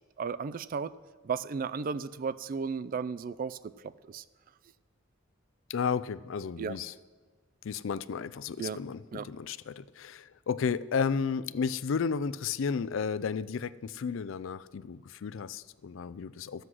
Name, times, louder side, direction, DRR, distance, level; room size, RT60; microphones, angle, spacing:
voice 1, 0.2-0.9 1.2-4.2 6.6-6.8 8.6-8.8 9.1-9.3, right 5 dB, 45° right, 16 dB, 0.3 m, -34 dB
voice 2, 5.7-6.9 7.6-16.7, left 6 dB, 65° left, 17 dB, 0.4 m, -33 dB
12.5 x 7.9 x 6.2 m, 1.4 s
head